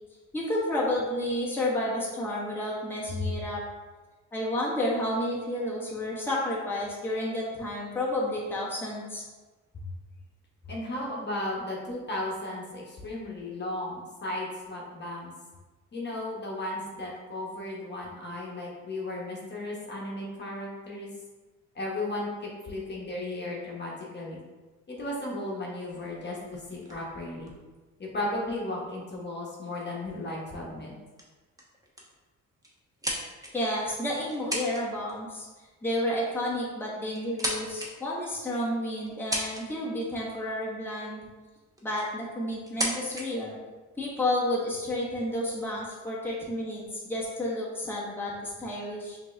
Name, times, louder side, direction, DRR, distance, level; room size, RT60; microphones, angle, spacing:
voice 1, 0.3-3.6 4.3-9.2 33.5-35.5 35.8-41.3 41.8-43.6 44.0-49.2, left 1 dB, 5° left, -6 dB, 1.1 m, -31 dB
voice 2, 10.7-15.3 15.9-21.1 21.7-24.4 24.9-27.5 28.0-30.9, left 1 dB, 35° left, -3 dB, 1.2 m, -35 dB
sound 1, 25.9-28.5 29.4-29.5 29.8-30.0 30.6-30.9 31.2-31.3 31.6-32.1 32.6-33.8 34.3-34.8 35.1-35.4 36.4-36.5 37.0-37.9 38.5-38.6 39.1-39.9 41.2-41.3 41.8-42.1 42.6-43.2, equal, 10° right, 1.0 m, -35 dB
5.0 x 2.9 x 3.3 m, 1.3 s
cardioid pair, 90°, 30 cm